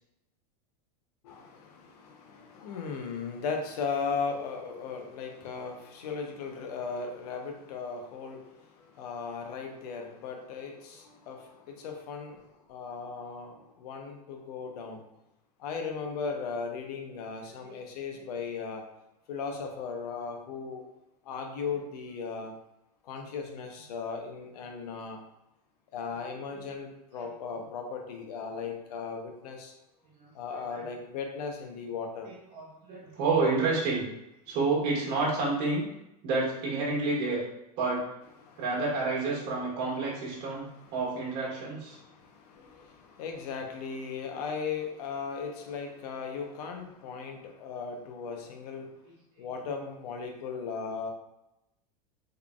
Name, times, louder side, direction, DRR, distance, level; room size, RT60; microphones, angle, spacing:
voice 1, 1.2-15.0 15.6-18.8 19.3-20.8 21.2-22.5 23.0-25.2 25.9-29.7 30.3-32.3 38.4-38.6 40.7-41.0 41.9-48.9 49.4-51.1, left 5 dB, 75° left, 3 dB, 0.8 m, -37 dB
voice 2, 32.3-34.0 34.5-35.9 36.2-37.4 37.8-38.0 38.6-40.6 40.9-42.0, right 3 dB, 55° right, -4 dB, 1.5 m, -29 dB
3.8 x 3.4 x 2.3 m, 0.88 s
hypercardioid pair, 115°, 20 cm